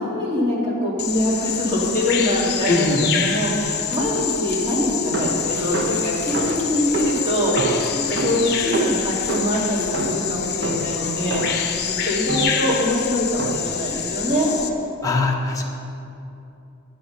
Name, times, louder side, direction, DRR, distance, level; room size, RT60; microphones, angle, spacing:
voice 1, 0.0-11.6 12.0-14.6, left 1 dB, 30° right, -6 dB, 3.0 m, -23 dB
Bird vocalization bird call bird song, 1.0-14.7, left 8 dB, 50° left, 0.9 m, -27 dB
voice 2, 2.7-3.0 15.0-15.7, left 3 dB, 15° left, -2 dB, 1.2 m, -21 dB
sound 1, 5.1-11.8 12.3-12.7 13.4-13.9, right 2 dB, 55° right, 1.0 m, -28 dB
10.5 x 10.0 x 5.6 m, 2.8 s
head